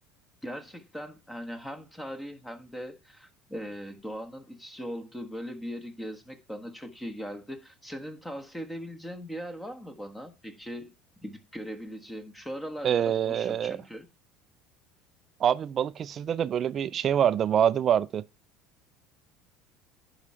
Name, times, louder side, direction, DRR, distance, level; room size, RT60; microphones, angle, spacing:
voice 1, 0.4-10.9 11.2-14.1, equal, 10° left, 1.5 m, -39 dB
voice 2, 12.8-13.8 15.4-18.2, right 9 dB, 35° right, 0.4 m, -25 dB
11.0 x 4.9 x 5.6 m
supercardioid pair, 130°, 0 cm